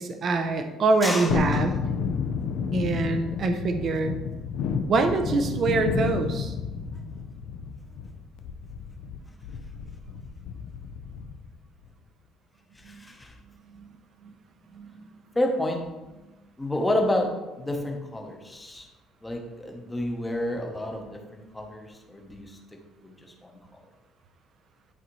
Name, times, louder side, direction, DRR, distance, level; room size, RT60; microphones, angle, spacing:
voice 1, 0.0-1.8 2.7-4.2 4.9-6.5 12.8-13.0 13.7-13.9 14.2-14.3 14.7-15.1, right 3 dB, 35° right, 7 dB, 0.5 m, -25 dB
voice 2, 1.0-1.6 12.9-13.3 15.3-15.9 16.6-18.9 19.2-22.6 23.0-23.5, left 1 dB, 10° left, 2 dB, 0.9 m, -30 dB
Thunderstorm, 1.3-11.5 11.8-11.9, left 6 dB, 65° left, 0.5 m, -31 dB
11.0 x 4.1 x 3.1 m, 1.1 s
cardioid pair, 170°, 0 cm